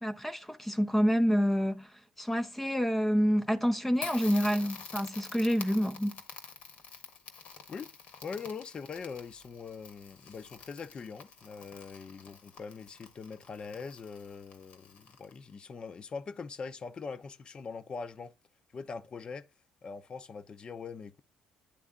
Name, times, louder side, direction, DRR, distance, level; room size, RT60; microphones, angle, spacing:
voice 1, 0.0-1.9 2.2-6.1, equal, 5° left, 0.5 m, -28 dB
Crackle, 4.0-15.5, left 5 dB, 65° left, 1.5 m, -48 dB
voice 2, 8.2-18.3 18.7-19.5 19.8-21.2, left 5 dB, 40° left, 0.7 m, -42 dB
10.0 x 3.4 x 3.7 m
supercardioid pair, 75°, 2 cm